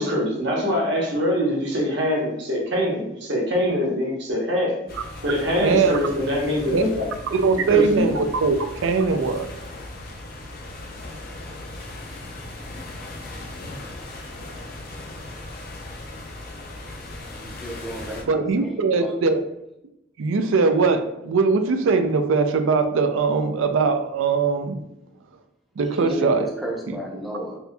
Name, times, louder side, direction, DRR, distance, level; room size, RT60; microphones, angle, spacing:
voice 1, 0.0-4.8 5.2-7.4 7.7-8.1, equal, 60° right, -2 dB, 1.0 m, -24 dB
sound 1, 4.9-18.2, left 1 dB, 45° left, 0.5 m, -38 dB
voice 2, 5.6-6.0 6.7-6.8 7.3-8.6 8.8-9.5 18.3-19.4 20.2-24.8 25.8-26.5 26.9-27.0, right 4 dB, 80° right, 8 dB, 0.4 m, -21 dB
voice 3, 17.4-19.3 26.0-27.6, equal, ahead, -3 dB, 0.6 m, -33 dB
4.2 x 2.6 x 2.2 m, 0.87 s
head